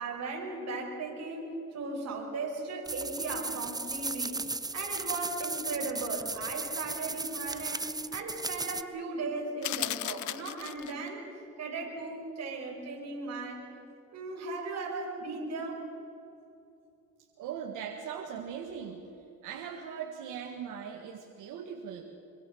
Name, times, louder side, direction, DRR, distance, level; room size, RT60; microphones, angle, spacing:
voice 1, 0.0-4.5 4.7-11.3 11.6-13.7 14.1-15.9, right 3 dB, 60° right, 0 dB, 5.4 m, -37 dB
sound 1, 2.9-8.8, right 3 dB, 15° right, 0.8 m, -36 dB
sound 2, 9.6-11.1, left 14 dB, 75° left, 0.8 m, -35 dB
voice 2, 17.4-19.1 19.4-22.0, right 7 dB, 90° right, 3 dB, 1.8 m, -40 dB
25.0 x 23.5 x 6.4 m, 2.9 s
cardioid pair, 90°, 30 cm